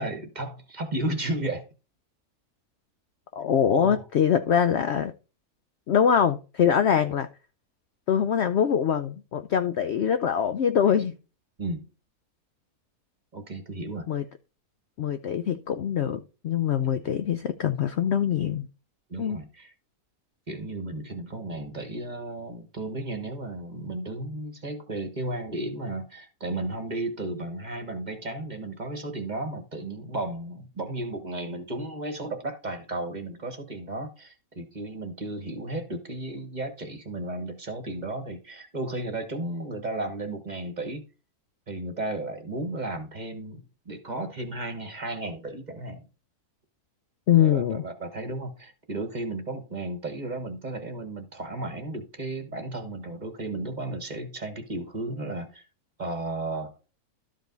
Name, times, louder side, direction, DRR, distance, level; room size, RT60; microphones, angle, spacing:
voice 1, 0.0-1.6 3.7-4.0 11.6-11.8 13.3-14.1 17.0-17.1 19.1-19.7 20.5-41.0 41.7-46.0 47.4-55.6 56.0-56.7, right 2 dB, 30° right, 1.3 m, -34 dB
voice 2, 3.4-5.1 5.9-7.3 8.1-11.1 14.1-14.2 15.0-18.7 19.2-19.4 47.3-47.8, left 8 dB, 65° left, 0.7 m, -23 dB
12.5 x 5.1 x 3.9 m
omnidirectional pair, 1.6 m